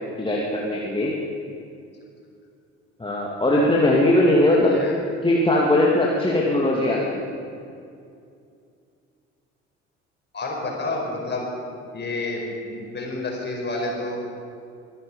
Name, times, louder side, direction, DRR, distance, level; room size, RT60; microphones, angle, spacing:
voice 1, 0.2-1.1 3.0-4.8 5.2-7.2, left 1 dB, 15° left, -4 dB, 2.3 m, -20 dB
voice 2, 4.6-5.0 10.3-11.5 11.9-14.2, left 2 dB, 30° left, -1 dB, 5.1 m, -29 dB
22.5 x 11.0 x 5.5 m, 2.4 s
figure-of-eight pair, 55°, 35 cm